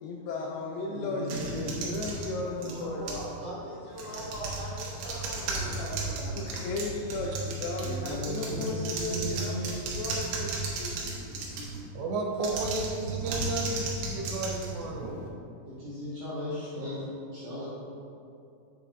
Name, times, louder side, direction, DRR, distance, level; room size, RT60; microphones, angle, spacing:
voice 1, 0.0-3.2 3.5-3.8 6.4-10.5 10.8-11.7, left 3 dB, 85° left, 0 dB, 2.3 m, -36 dB
voice 2, 0.9-3.4 7.8-9.8 15.6-17.0 17.3-17.7, equal, 60° right, -10 dB, 1.9 m, -37 dB
sound 1, 1.3-3.3 3.9-11.8 12.4-15.3, right 3 dB, 75° right, 2.2 m, -35 dB
voice 3, 2.6-6.8, equal, 65° left, -9 dB, 2.1 m, -41 dB
voice 4, 11.9-15.2, right 2 dB, 90° right, 0 dB, 3.2 m, -33 dB
8.3 x 6.9 x 2.5 m, 2.6 s
omnidirectional pair, 4.9 m